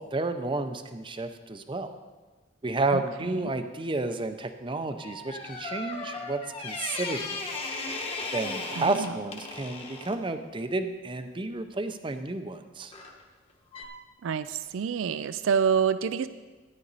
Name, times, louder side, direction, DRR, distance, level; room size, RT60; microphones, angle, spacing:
voice 1, 0.0-1.9 2.6-7.6 8.3-12.9, right 2 dB, 25° right, 9 dB, 0.6 m, -31 dB
sound 1, 5.0-10.2 12.9-13.2 13.7-13.9, left 3 dB, 30° left, 1.2 m, -36 dB
voice 2, 8.8-9.1 14.2-16.3, right 7 dB, 70° right, 13 dB, 0.4 m, -27 dB
13.0 x 9.9 x 4.1 m, 1.3 s
head